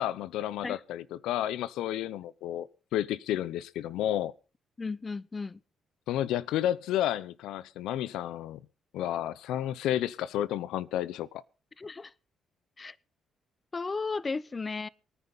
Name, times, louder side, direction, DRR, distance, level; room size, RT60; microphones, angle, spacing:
voice 1, 0.0-4.3 6.1-8.6 8.9-11.4, left 12 dB, 90° left, 0.6 m, -31 dB
voice 2, 4.8-5.6 11.8-12.1 12.8-13.0 13.7-14.9, left 4 dB, 30° left, 0.7 m, -34 dB
24.0 x 9.7 x 4.0 m
cardioid pair, 90°, 0 cm